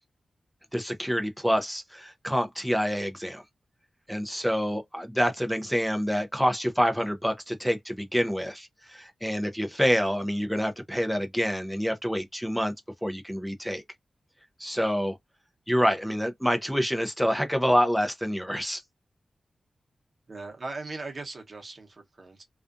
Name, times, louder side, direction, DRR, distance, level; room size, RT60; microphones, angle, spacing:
voice 1, 0.7-3.4 4.1-12.7 13.0-13.8 14.6-15.2 15.7-18.8, equal, ahead, 0.5 m, -27 dB
voice 2, 20.3-22.4, right 3 dB, 50° right, 0.9 m, -39 dB
2.4 x 2.3 x 2.4 m
cardioid pair, 50°, 0 cm